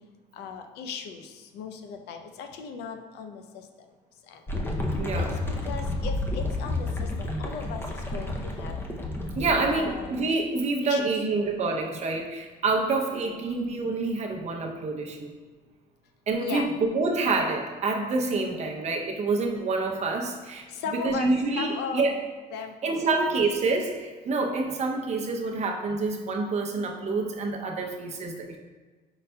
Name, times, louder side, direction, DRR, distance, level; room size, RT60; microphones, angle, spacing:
voice 1, 0.4-3.4 4.3-4.4 5.2-5.3 5.7-6.9 7.2-7.8 8.1-8.8 9.4-10.3 10.9-11.1 16.4-16.7 20.7-22.1 22.5-22.9, left 6 dB, 80° left, 6 dB, 0.5 m, -37 dB
sound 1, 4.5-10.2, left 2 dB, 15° left, 0.5 m, -31 dB
voice 2, 5.0-5.3 9.4-15.3 16.3-20.6 20.9-22.1 22.8-28.6, right 3 dB, 40° right, 1 dB, 0.6 m, -27 dB
5.3 x 3.9 x 2.2 m, 1.3 s
cardioid pair, 110°, 17 cm